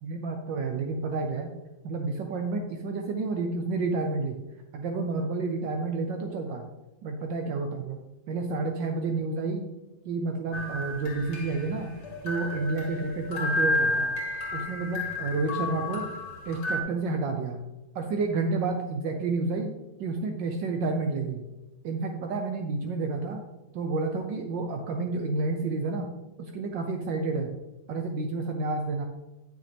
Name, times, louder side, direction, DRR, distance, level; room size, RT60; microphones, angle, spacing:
voice 1, 0.0-1.5 1.8-4.4 4.7-6.7 7.0-8.0 8.3-9.7 10.0-11.9 12.2-14.1 14.5-16.1 16.5-17.6 17.9-19.7 20.0-21.4 21.8-23.4 23.7-26.1 26.4-27.5 27.9-29.1, right 3 dB, 70° right, 4 dB, 1.4 m, -30 dB
sound 1, 10.5-16.8, left 2 dB, 60° left, 2.3 m, -31 dB
10.0 x 6.5 x 3.4 m, 1.0 s
omnidirectional pair, 2.1 m